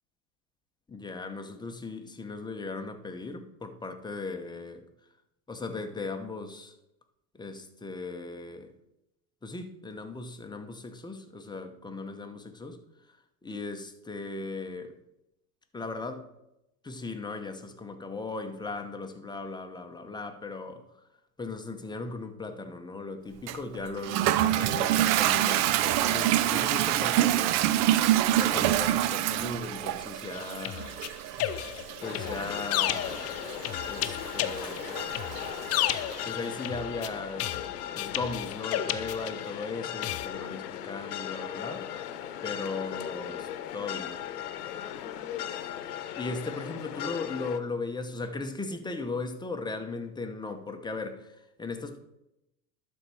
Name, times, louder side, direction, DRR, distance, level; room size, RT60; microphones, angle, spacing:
voice 1, 0.9-4.8 5.5-6.7 7.3-8.7 9.4-12.8 13.1-13.2 13.4-15.0 15.7-16.2 16.8-20.8 21.4-27.7 28.3-31.0 32.0-33.4 33.9-35.0 36.2-37.7 37.9-41.9 42.4-44.2 46.1-52.0, left 3 dB, 10° left, 6 dB, 0.9 m, -37 dB
Toilet flush, 23.5-36.2, right 13 dB, 40° right, 0.4 m, -27 dB
sound 1, 30.3-39.6 40.0-40.3, left 12 dB, 35° left, 0.5 m, -33 dB
sound 2, 32.0-47.6, left 10 dB, 75° left, 1.0 m, -37 dB
11.5 x 4.4 x 4.8 m, 0.87 s
hypercardioid pair, 105°, 46 cm